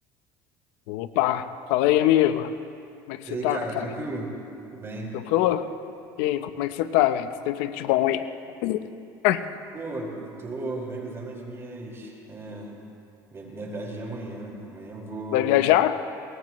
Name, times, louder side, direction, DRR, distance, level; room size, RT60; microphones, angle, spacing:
voice 1, 0.9-2.5 3.1-3.8 5.1-5.7 6.2-8.2 8.6-8.8 9.2-9.4 15.3-16.0, left 13 dB, 80° left, 11 dB, 0.8 m, -23 dB
voice 2, 3.3-4.3 4.7-5.1 9.7-12.7 13.3-15.5, right 2 dB, 25° right, -2 dB, 5.0 m, -35 dB
23.0 x 20.0 x 3.1 m, 2.5 s
supercardioid pair, 100°, 10 cm